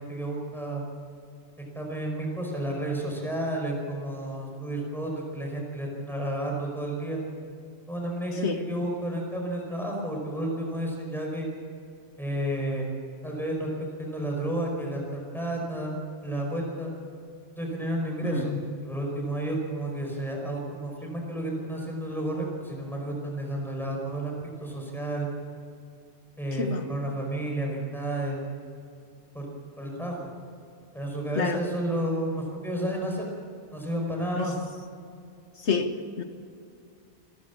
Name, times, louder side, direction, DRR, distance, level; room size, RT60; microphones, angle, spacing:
voice 1, 0.1-0.8 1.7-7.2 7.9-11.5 12.2-12.9 13.2-13.7 14.0-16.9 17.6-18.5 18.8-25.3 26.4-28.4 29.3-29.5 29.8-30.3 30.9-33.3 33.7-34.5, right 1 dB, ahead, 0 dB, 5.3 m, -31 dB
voice 2, 18.3-18.7 26.6-26.8 31.4-31.6 34.4-34.5 35.6-36.2, left 5 dB, 85° left, 7 dB, 1.8 m, -28 dB
27.5 x 12.5 x 8.4 m, 2.4 s
omnidirectional pair, 1.1 m